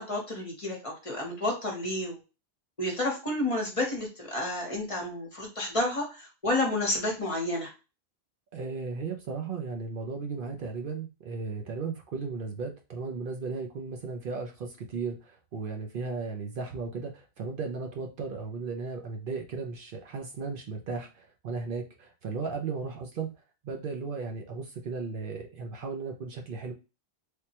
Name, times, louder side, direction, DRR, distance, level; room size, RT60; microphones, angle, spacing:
voice 1, 0.0-2.2 2.8-7.7, left 1 dB, 35° left, -1 dB, 0.8 m, -30 dB
voice 2, 8.5-23.3 23.6-26.7, right 4 dB, 60° right, 2 dB, 0.7 m, -35 dB
3.4 x 2.1 x 2.8 m, 0.30 s
omnidirectional pair, 1.1 m